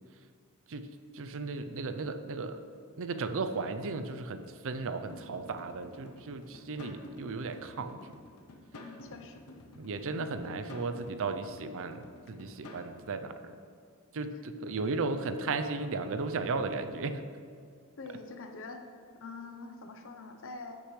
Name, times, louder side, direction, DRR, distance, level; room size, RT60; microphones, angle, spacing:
voice 1, 1.1-2.6 3.0-8.2 9.8-13.6 14.1-17.2, right 3 dB, 65° right, 9 dB, 0.5 m, -35 dB
sound 1, 5.1-12.9, left 1 dB, 90° left, 0.8 m, -51 dB
voice 2, 8.8-9.4 18.0-18.8 19.2-20.8, left 3 dB, 60° left, 5 dB, 0.8 m, -44 dB
14.0 x 6.5 x 3.2 m, 2.3 s
head